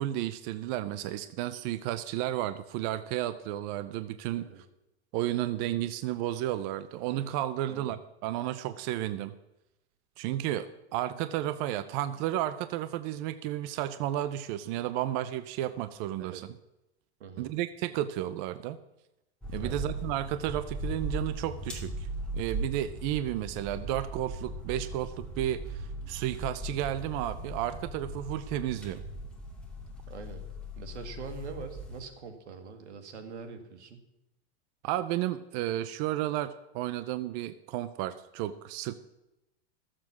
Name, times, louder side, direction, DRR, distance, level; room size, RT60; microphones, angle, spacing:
voice 1, 0.0-4.5 5.1-9.3 10.2-16.5 17.4-18.8 19.5-22.1 22.3-29.0 34.8-38.9, right 13 dB, 45° right, 13 dB, 0.6 m, -32 dB
voice 2, 17.2-17.5 19.6-19.9 30.1-30.4 30.8-34.0, right 5 dB, 85° right, 6 dB, 2.0 m, -43 dB
sound 1, 19.4-32.0, right 1 dB, 5° left, 2.2 m, -38 dB
13.5 x 7.5 x 6.1 m, 0.92 s
supercardioid pair, 135°, 33 cm